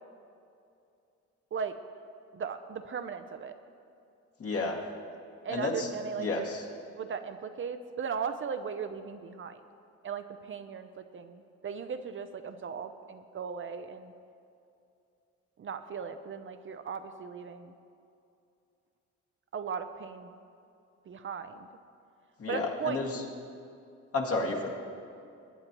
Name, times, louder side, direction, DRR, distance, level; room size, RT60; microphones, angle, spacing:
voice 1, 2.3-3.5 5.4-6.5 6.9-9.6 10.0-14.1 15.6-17.7 19.5-20.4 21.1-21.7 22.5-23.0, right 6 dB, 40° right, 8 dB, 0.6 m, -37 dB
voice 2, 4.4-4.8 5.5-5.9 6.2-6.6 22.4-23.2 24.1-24.7, left 3 dB, 50° left, -1 dB, 2.0 m, -31 dB
20.5 x 9.3 x 3.0 m, 2.6 s
cardioid pair, 90°, 30 cm